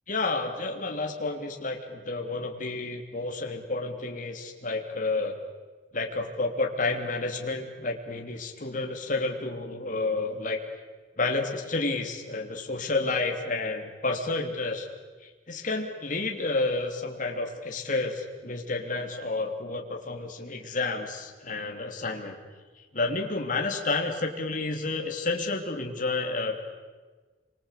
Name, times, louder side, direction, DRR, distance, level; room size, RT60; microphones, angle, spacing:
voice 1, 0.1-5.3 5.9-10.6 11.2-14.9 15.2-22.4 22.9-26.6, left 3 dB, 45° left, 2 dB, 3.3 m, -30 dB
28.5 x 24.5 x 8.4 m, 1.4 s
head